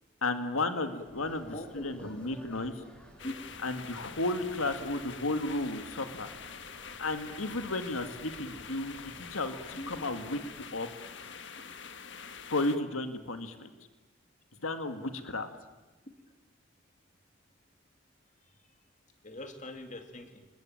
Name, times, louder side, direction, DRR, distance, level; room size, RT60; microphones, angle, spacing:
voice 1, 0.2-1.5 1.8-2.7 3.6-6.3 7.0-10.4 10.7-10.9 12.5-13.7 14.6-15.5, left 2 dB, 90° left, 8 dB, 2.0 m, -33 dB
sound 1, 1.0-10.7, equal, 5° left, 4.7 m, -55 dB
voice 2, 1.5-2.2 3.2-3.3 9.8-9.9 19.2-20.5, left 1 dB, 35° left, 6 dB, 2.5 m, -42 dB
sound 2, 3.2-12.8, left 6 dB, 60° left, 1.5 m, -46 dB
28.5 x 21.0 x 9.0 m, 1.2 s
head